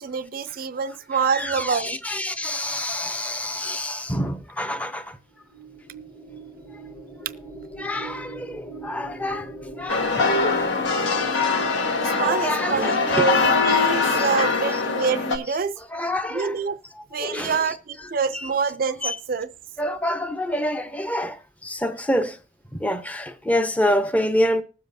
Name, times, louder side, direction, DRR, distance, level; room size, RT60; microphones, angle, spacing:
voice 1, 0.0-2.0 10.1-10.5 12.0-15.8 16.3-16.8 17.1-19.5, right 5 dB, 50° right, 0.4 m, -26 dB
voice 2, 1.3-5.2 7.8-10.7 12.2-13.3 14.2-14.5 14.7-14.8 15.9-16.6 17.2-17.7 18.0-18.5 19.0-19.2 19.8-22.4 22.7-24.6, left 1 dB, 10° left, 0.7 m, -27 dB
sound 1, 5.3-13.7, right 2 dB, 40° left, 1.6 m, -42 dB
sound 2, 9.9-15.4, left 4 dB, 75° left, 1.4 m, -22 dB
20.0 x 7.4 x 2.6 m
head